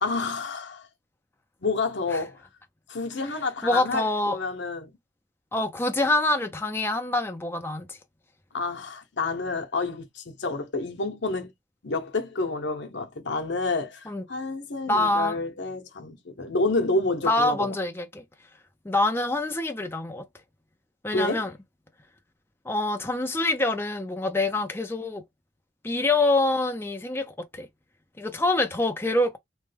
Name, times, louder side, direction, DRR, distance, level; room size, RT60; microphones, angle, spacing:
voice 1, 0.0-0.9 1.6-2.4 2.9-5.0 8.5-11.5 11.8-17.7 21.1-21.5, left 3 dB, 65° left, 0.8 m, -29 dB
voice 2, 3.6-4.4 5.5-8.0 14.1-14.2 14.9-15.4 17.2-18.2 18.8-20.2 21.0-21.5 22.6-25.2 25.8-27.7 28.2-29.4, left 2 dB, 10° left, 0.5 m, -25 dB
3.1 x 2.2 x 3.3 m
head